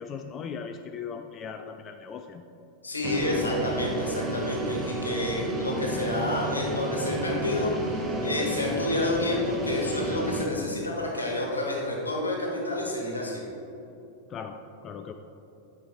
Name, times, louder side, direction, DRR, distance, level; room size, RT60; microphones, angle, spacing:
voice 1, 0.0-2.4 5.4-5.6 14.3-15.1, left 6 dB, 30° left, 6 dB, 0.3 m, -39 dB
voice 2, 2.8-13.4, left 1 dB, 80° left, -1 dB, 1.3 m, -29 dB
sound 1, 3.0-10.5, right 1 dB, 20° right, 0.8 m, -32 dB
9.3 x 4.7 x 3.3 m, 2.8 s
figure-of-eight pair, 90°, 0 cm